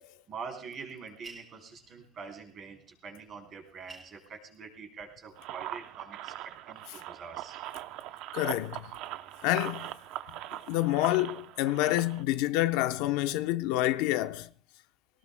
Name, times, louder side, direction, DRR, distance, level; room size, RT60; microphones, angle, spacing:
voice 1, 0.3-7.6, right 5 dB, 35° right, 3.7 m, -45 dB
Echo in a Buddhist temple, 1.2-2.2 3.3-3.4 3.6-5.3 5.7-6.4, right 4 dB, 15° right, 5.9 m, -52 dB
sound 1, 5.4-12.2, right 14 dB, 65° right, 0.7 m, -41 dB
voice 2, 8.3-8.9 9.4-9.9 10.7-14.5, left 15 dB, 80° left, 0.7 m, -28 dB
23.5 x 18.0 x 2.2 m
cardioid pair, 155°, 0 cm